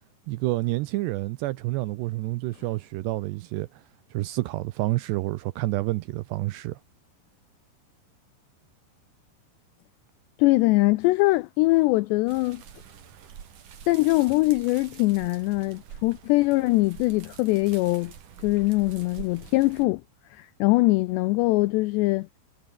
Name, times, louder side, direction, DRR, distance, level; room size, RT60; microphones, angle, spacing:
voice 1, 0.3-3.8 4.1-6.8, right 19 dB, 85° right, 2.5 m, -29 dB
voice 2, 10.4-12.6 13.9-18.1 18.4-20.0 20.3-22.3, left 21 dB, 85° left, 2.5 m, -22 dB
sound 1, 12.3-19.9, right 8 dB, 50° right, 3.4 m, -46 dB
omnidirectional pair, 5.5 m